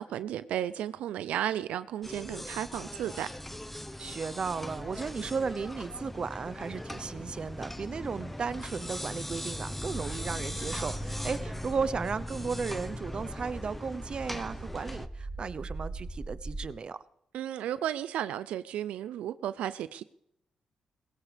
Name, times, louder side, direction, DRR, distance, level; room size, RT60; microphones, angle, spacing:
voice 1, 0.0-3.3 17.3-20.0, right 11 dB, 90° right, 0.5 m, -34 dB
sound 1, 2.0-15.1, left 1 dB, 10° left, 1.0 m, -39 dB
voice 2, 4.0-17.0, right 5 dB, 50° right, 0.8 m, -35 dB
sound 2, 9.6-16.7, right 2 dB, 10° right, 1.8 m, -42 dB
20.5 x 17.5 x 3.5 m
cardioid pair, 70°, 2 cm